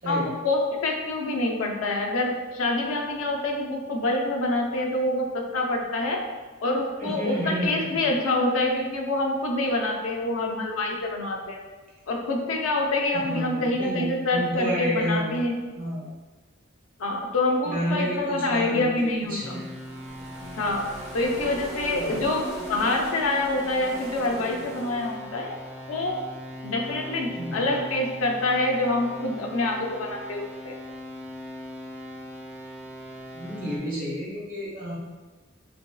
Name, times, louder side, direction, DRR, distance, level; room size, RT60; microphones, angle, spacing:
voice 1, 0.1-6.2 6.6-11.6 12.1-15.6 17.0-19.5 20.6-20.9 21.1-25.6 25.9-26.2 26.6-30.8, left 2 dB, 85° left, 1 dB, 0.4 m, -26 dB
voice 2, 7.0-8.1 13.1-15.3 15.8-16.1 17.6-19.6 22.0-22.3 27.3-27.8 33.3-34.9, equal, 45° right, -7 dB, 1.1 m, -30 dB
sound 1, 18.7-26.8, right 2 dB, 85° right, 0.7 m, -42 dB
sound 2, 19.4-33.8, equal, 5° right, 0.3 m, -40 dB
2.9 x 2.6 x 2.2 m, 1.3 s
head